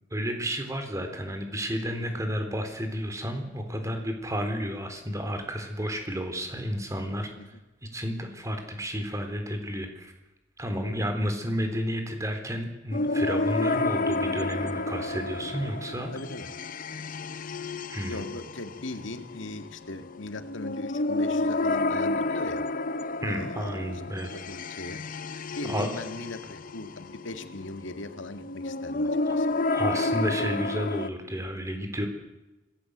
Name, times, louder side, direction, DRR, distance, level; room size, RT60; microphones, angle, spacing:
voice 1, 0.1-7.3 7.9-10.1 10.6-16.1 17.9-18.2 23.2-24.3 25.6-25.9 29.7-32.1, equal, 15° right, 5 dB, 3.8 m, -31 dB
sound 1, 12.9-31.1, left 2 dB, 45° left, 0.9 m, -30 dB
voice 2, 16.1-16.5 18.1-22.6 23.2-23.8 24.3-25.0 25.5-29.5, left 2 dB, 90° left, 8 dB, 2.0 m, -39 dB
26.0 x 18.0 x 8.1 m, 1.0 s
head